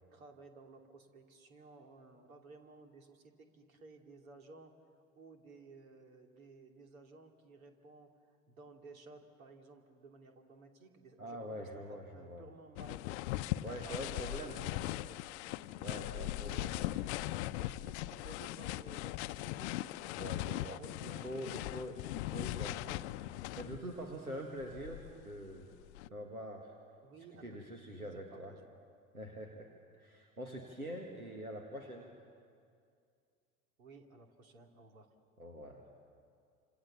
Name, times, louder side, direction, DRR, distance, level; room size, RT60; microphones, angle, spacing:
voice 1, 0.1-4.7 5.2-13.2 13.7-15.3 15.6-15.7 16.1-19.7 20.6-21.9 27.0-28.7 33.8-35.1, right 3 dB, 70° right, 4 dB, 2.9 m, -56 dB
voice 2, 11.2-12.5 13.6-14.6 15.8-16.8 20.2-25.8 26.1-26.7 27.4-28.5 29.1-32.1 35.4-35.8, equal, 90° right, 2 dB, 1.8 m, -45 dB
sound 1, 12.8-24.0 24.6-26.1, left 16 dB, 55° left, 0.7 m, -39 dB
29.5 x 27.0 x 7.1 m, 2.3 s
figure-of-eight pair, 70°, 43 cm